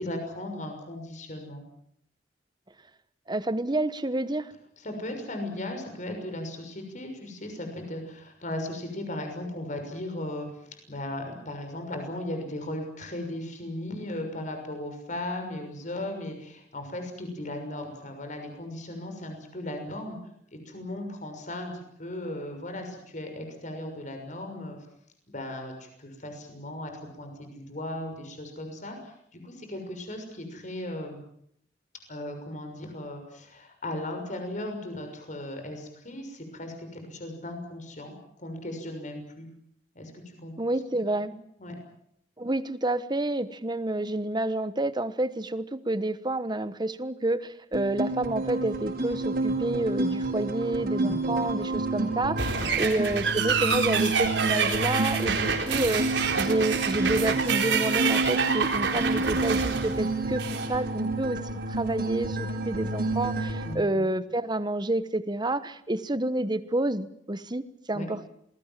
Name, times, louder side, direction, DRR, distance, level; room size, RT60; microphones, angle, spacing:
voice 1, 0.0-1.6 4.8-20.2 20.6-21.7 22.0-24.8 25.3-26.9 27.2-31.2 32.1-39.5 39.9-40.5 41.6-41.8 50.9-51.4 52.6-52.9 58.9-59.1 63.6-64.1 67.9-68.1, left 1 dB, 45° left, 5 dB, 6.4 m, -37 dB
voice 2, 3.3-4.5 40.6-41.3 42.4-61.4 61.7-68.3, right 2 dB, 25° right, 13 dB, 1.2 m, -29 dB
sound 1, 47.7-63.7, right 2 dB, 60° right, 5.3 m, -30 dB
sound 2, 52.4-60.7, right 6 dB, 85° right, 4.2 m, -27 dB
27.5 x 20.5 x 7.6 m, 0.71 s
head